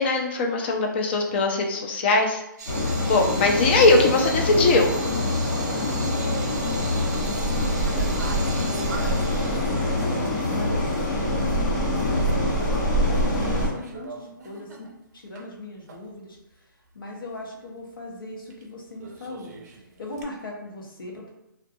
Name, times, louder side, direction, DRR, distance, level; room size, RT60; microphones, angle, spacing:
voice 1, 0.0-2.4 3.1-4.9, left 3 dB, 30° left, 2 dB, 0.4 m, -20 dB
sound 1, 2.6-11.2 11.5-11.6 12.0-12.8 13.1-15.4 15.9-16.0 18.5-18.6 19.0-20.2, right 4 dB, 50° right, 0.5 m, -39 dB
sound 2, 2.7-13.7, left 1 dB, 65° left, 1.2 m, -25 dB
voice 2, 3.7-4.8 5.2-12.5 13.0-16.4 16.9-19.6 20.0-21.3, left 2 dB, 90° left, -1 dB, 0.8 m, -40 dB
2.3 x 2.2 x 2.6 m, 0.87 s
hypercardioid pair, 155°, 11 cm